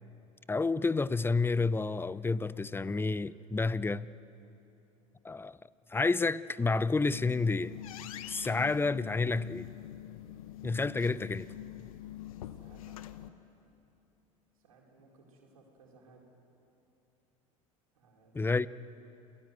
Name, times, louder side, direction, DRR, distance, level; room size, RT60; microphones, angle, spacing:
voice 1, 0.5-4.1 5.2-5.6 5.9-7.8 8.3-9.7 10.6-11.5 18.3-18.7, left 3 dB, 10° left, 0.6 m, -30 dB
sound 1, 6.8-13.3, left 12 dB, 80° left, 1.0 m, -45 dB
voice 2, 12.4-13.0 14.5-16.2 17.9-18.6, right 3 dB, 85° right, 4.4 m, -61 dB
28.5 x 18.0 x 8.0 m
hypercardioid pair, 80°, 18 cm